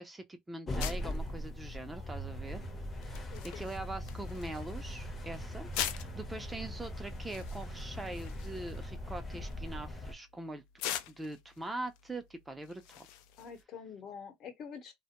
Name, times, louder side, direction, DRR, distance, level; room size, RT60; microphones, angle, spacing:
voice 1, 0.0-2.6 3.0-10.6 11.1-13.1, right 2 dB, 15° right, 0.5 m, -43 dB
Elevator ride, 0.7-10.1, equal, 25° left, 0.8 m, -40 dB
sound 1, 0.8-13.6, left 11 dB, 65° left, 0.4 m, -45 dB
voice 2, 3.2-3.7 13.4-14.9, left 6 dB, 50° left, 1.0 m, -47 dB
2.2 x 2.0 x 2.9 m
hypercardioid pair, 90°, 0 cm